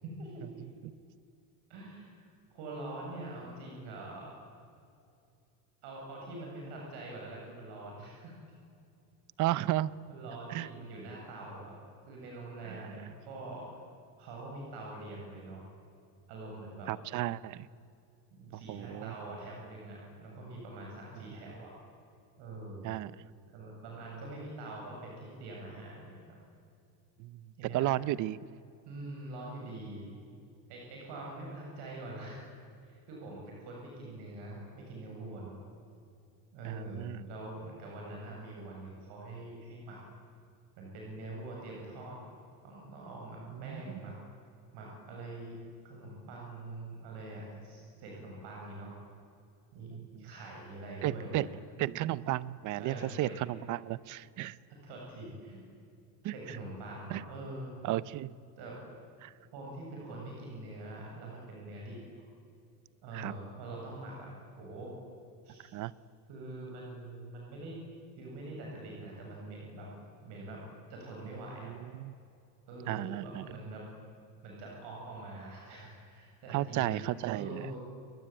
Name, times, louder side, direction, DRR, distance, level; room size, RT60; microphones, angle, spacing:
voice 1, 0.0-0.6 1.7-4.3 5.8-8.3 10.1-11.8 12.1-13.7 14.2-15.7 16.3-16.9 18.3-21.7 22.4-22.9 23.5-26.4 27.6-27.9 28.9-30.1 30.7-32.4 32.8-35.6 36.5-40.0 40.8-42.2 42.6-44.1 44.7-45.6 45.8-48.9 49.7-51.5 52.8-53.4 54.8-55.6 56.3-57.7 58.6-58.8 59.5-62.0 63.0-64.3 64.6-65.0 65.4-65.7 66.3-67.8 68.2-69.9 70.2-70.6 70.9-71.7 72.7-73.8 74.4-77.0 77.3-77.8, right 2 dB, 55° right, -2 dB, 7.9 m, -44 dB
voice 2, 9.4-9.9 10.5-10.7 12.7-12.8 16.9-17.7 18.7-19.1 22.8-23.1 27.2-27.4 27.7-28.4 36.6-37.3 43.5-43.8 49.9-50.3 51.0-51.5 51.8-54.6 56.2-56.3 57.1-57.2 57.8-58.3 59.2-59.3 63.1-63.3 65.7-65.9 71.6-72.1 72.9-73.4 76.5-77.7, right 15 dB, 40° right, 19 dB, 0.7 m, -33 dB
30.0 x 21.5 x 8.9 m, 2.5 s
cardioid pair, 150°, 48 cm